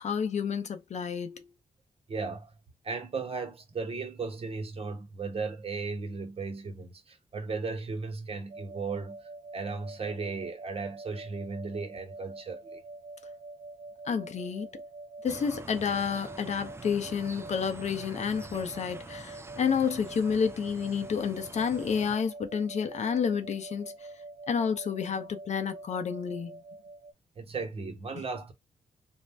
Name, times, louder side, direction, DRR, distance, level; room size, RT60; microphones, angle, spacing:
voice 1, 0.0-1.4 14.1-14.7 15.2-23.9 24.5-26.6 28.1-28.2, left 6 dB, 60° left, 0.6 m, -30 dB
voice 2, 2.1-2.5 2.8-9.2 9.5-12.8 27.4-28.5, right 4 dB, 45° right, 1.0 m, -36 dB
sound 1, 8.5-27.1, right 2 dB, 75° right, 0.5 m, -46 dB
sound 2, 15.2-22.2, right 3 dB, 20° right, 0.4 m, -46 dB
2.5 x 2.1 x 3.3 m
cardioid pair, 65°, 13 cm